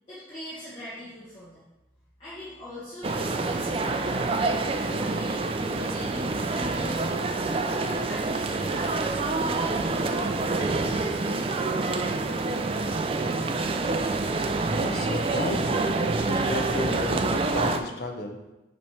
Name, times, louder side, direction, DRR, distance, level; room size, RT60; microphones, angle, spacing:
voice 1, 0.1-1.6 2.2-7.2 7.6-11.3, left 1 dB, 30° left, -13 dB, 1.6 m, -41 dB
sound 1, 3.0-17.8, right 3 dB, 30° right, 0.3 m, -27 dB
voice 2, 14.7-18.4, left 2 dB, 55° left, 4 dB, 0.7 m, -33 dB
7.1 x 3.1 x 4.4 m, 1.0 s
head